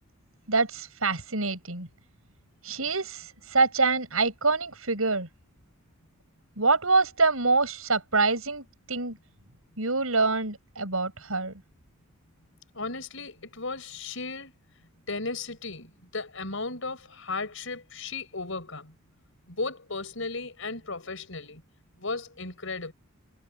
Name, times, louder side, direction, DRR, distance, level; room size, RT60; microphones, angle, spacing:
voice 1, 0.5-1.9 2.6-5.3 6.6-9.2 9.8-11.5, right 3 dB, 75° right, 7.8 m, -25 dB
voice 2, 12.7-14.5 15.1-18.9 19.5-21.6 22.0-22.9, left 3 dB, 65° left, 6.9 m, -35 dB
head